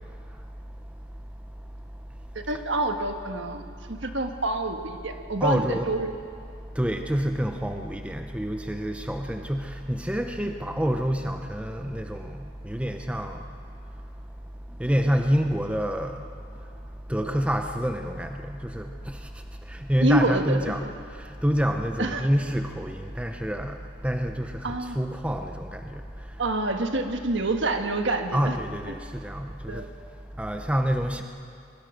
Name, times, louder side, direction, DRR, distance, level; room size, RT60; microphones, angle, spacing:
voice 1, 2.5-3.6 3.9-6.1 20.0-20.6 22.0-22.3 24.6-25.0 26.4-28.6 29.7-29.8, right 2 dB, 60° right, 5 dB, 1.6 m, -27 dB
voice 2, 5.4-5.9 6.8-12.4 12.6-13.4 14.8-16.2 17.1-19.2 19.7-20.8 21.2-23.8 24.0-26.0 28.3-29.9 30.4-31.2, equal, 5° right, 5 dB, 0.7 m, -27 dB
23.0 x 21.0 x 6.4 m, 2.4 s
head